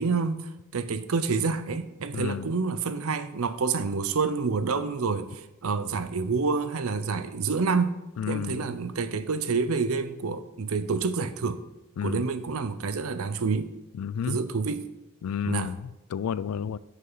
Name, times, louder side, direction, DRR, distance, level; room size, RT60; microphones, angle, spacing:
voice 1, 0.0-8.0 8.3-11.6 12.0-13.7 14.3-14.9 15.5-15.7, right 4 dB, 75° right, 0.6 m, -28 dB
voice 2, 2.1-2.5 8.2-8.7 12.0-12.2 14.0-14.4 15.2-16.8, left 7 dB, 75° left, 0.3 m, -31 dB
9.3 x 6.5 x 4.0 m
head